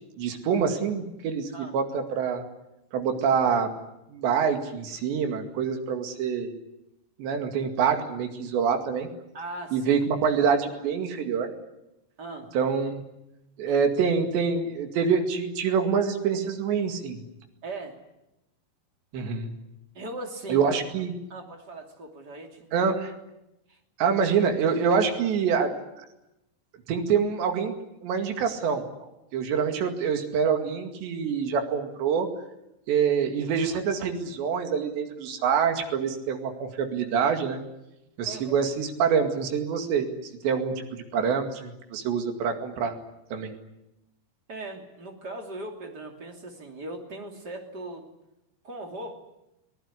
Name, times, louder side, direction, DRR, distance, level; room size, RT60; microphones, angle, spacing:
voice 1, 0.2-2.5 2.9-3.7 4.1-6.5 7.2-9.1 9.7-11.5 12.5-13.1 13.6-17.2 19.1-19.5 20.5-21.1 22.7-23.0 24.0-25.7 26.9-27.7 28.0-32.3 32.9-37.6 38.2-40.1 40.4-43.0 43.3-43.5, right 6 dB, 75° right, 6 dB, 4.4 m, -26 dB
voice 2, 9.3-10.0 12.2-12.5 13.7-13.8 17.6-18.0 19.9-20.8 21.3-22.9 23.7-23.8 38.2-38.6 44.5-48.0 48.6-49.2, right 2 dB, 25° right, 3 dB, 2.8 m, -39 dB
24.5 x 18.5 x 9.9 m, 0.90 s
omnidirectional pair, 5.2 m